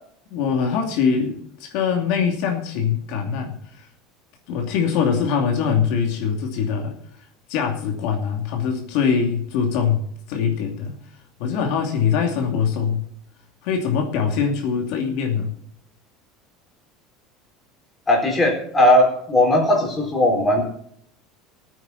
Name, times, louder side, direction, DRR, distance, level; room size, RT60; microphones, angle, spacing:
voice 1, 0.3-3.9 4.5-7.0 7.5-11.0 11.4-13.1 13.6-15.5, left 6 dB, 60° left, 2 dB, 2.6 m, -23 dB
voice 2, 18.1-20.6, left 1 dB, 10° left, 0 dB, 4.0 m, -18 dB
20.0 x 9.1 x 4.1 m, 0.67 s
cardioid pair, 170°, 0 cm